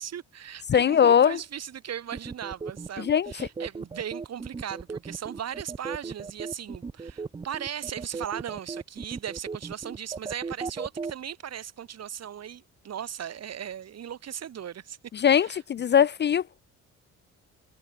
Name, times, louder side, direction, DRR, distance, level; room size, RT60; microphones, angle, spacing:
voice 1, 0.0-15.0 15.4-15.9, right 9 dB, 55° right, 2.3 m, -38 dB
voice 2, 0.7-1.4 3.0-3.3 15.1-16.6, left 8 dB, 35° left, 0.4 m, -21 dB
sound 1, 2.1-11.1, right 4 dB, 20° right, 0.5 m, -36 dB
cardioid pair, 90°, 30 cm